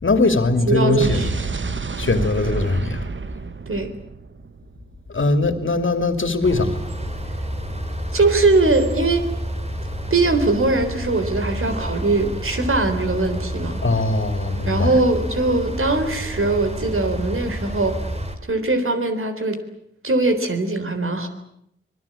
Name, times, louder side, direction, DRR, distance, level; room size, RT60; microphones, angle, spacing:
voice 1, 0.0-1.4 2.0-3.1 5.1-6.8 13.8-14.9, left 3 dB, 70° left, 8 dB, 2.8 m, -20 dB
voice 2, 0.7-1.3 3.7-3.9 8.1-9.3 10.1-13.8 14.7-18.0 18.4-19.6 20.0-21.3, right 3 dB, 80° right, 7 dB, 3.8 m, -21 dB
Explosion, 1.0-5.1, right 4 dB, 65° right, 1.2 m, -29 dB
sound 1, 6.4-18.4, right 1 dB, 30° right, 3.5 m, -29 dB
25.5 x 20.5 x 8.6 m, 0.75 s
wide cardioid pair, 60°, 21 cm